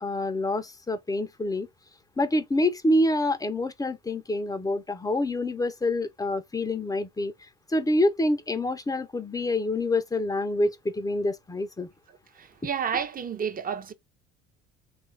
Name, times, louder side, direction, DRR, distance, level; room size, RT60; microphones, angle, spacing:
voice 1, 0.0-1.7 2.2-7.3 7.7-11.9, left 1 dB, 10° left, 0.6 m, -26 dB
voice 2, 12.4-13.9, right 7 dB, 30° right, 0.7 m, -30 dB
3.0 x 2.4 x 3.3 m
hypercardioid pair, 65°, 31 cm